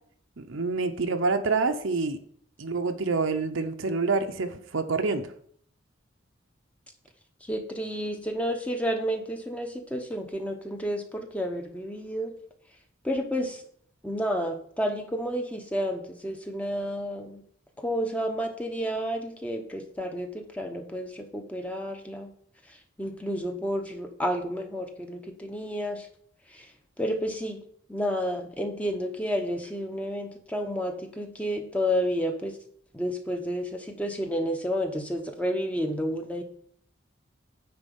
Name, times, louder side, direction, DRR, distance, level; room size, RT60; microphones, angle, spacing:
voice 1, 0.4-2.2 2.6-5.3, right 4 dB, 70° right, 7 dB, 0.8 m, -27 dB
voice 2, 7.4-12.3 13.0-13.6 14.0-17.4 17.8-22.3 23.0-26.1 26.5-26.7 27.0-27.6 27.9-32.6 32.9-36.4, equal, 5° left, 4 dB, 0.8 m, -31 dB
9.7 x 4.0 x 5.4 m, 0.62 s
head